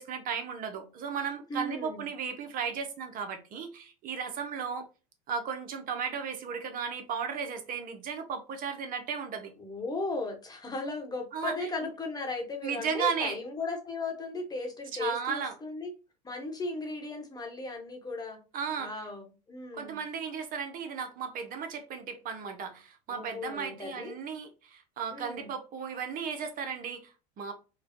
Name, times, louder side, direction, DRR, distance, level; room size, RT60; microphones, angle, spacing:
voice 1, 0.0-4.9 5.3-9.5 11.3-11.5 12.6-13.4 15.0-15.5 18.5-18.9 19.7-27.5, right 6 dB, 45° right, 0.8 m, -35 dB
voice 2, 1.5-2.0 9.6-15.9 16.2-18.4 18.8-20.0 23.1-24.2 25.1-25.5, left 3 dB, 20° left, 1.1 m, -36 dB
4.7 x 2.3 x 2.9 m
hypercardioid pair, 95°, 20 cm